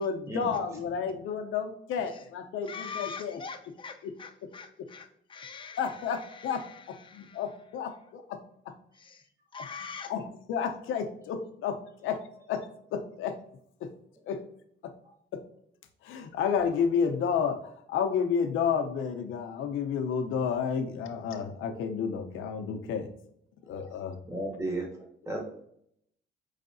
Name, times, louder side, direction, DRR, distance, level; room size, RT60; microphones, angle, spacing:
voice 1, 0.0-3.4 4.0-4.1 5.8-8.4 10.1-12.2 12.5-13.3 13.8-13.9 14.3-14.4 15.3-15.4 16.0-23.1 23.7-24.2, left 6 dB, 85° left, 5 dB, 0.7 m, -31 dB
voice 2, 2.6-7.5 8.9-10.1, left 5 dB, 25° left, 4 dB, 0.6 m, -44 dB
voice 3, 24.3-25.4, right 2 dB, 15° right, -1 dB, 1.7 m, -34 dB
5.5 x 3.3 x 2.6 m, 0.71 s
cardioid pair, 90°, 20 cm